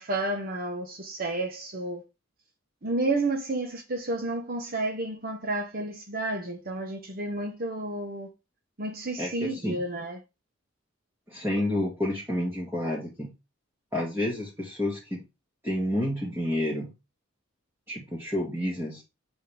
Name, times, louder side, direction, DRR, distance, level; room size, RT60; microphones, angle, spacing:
voice 1, 0.0-2.0 2.8-8.3 8.8-10.2, right 2 dB, 50° right, 1.2 m, -31 dB
voice 2, 9.2-9.8 11.3-13.3 13.9-15.2 15.6-16.9 17.9-19.0, left 1 dB, 10° right, 2.1 m, -29 dB
8.3 x 4.4 x 3.5 m
head